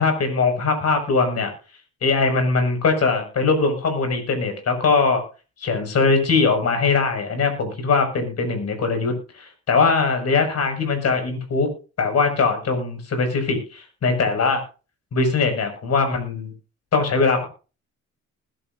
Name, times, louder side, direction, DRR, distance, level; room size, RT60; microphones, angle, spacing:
voice 1, 0.0-1.5 2.0-5.2 5.6-11.7 12.0-14.6 15.1-16.5 16.9-17.5, left 4 dB, 55° left, 6 dB, 6.3 m, -21 dB
21.0 x 12.0 x 2.7 m, 0.34 s
cardioid pair, 90°, 30 cm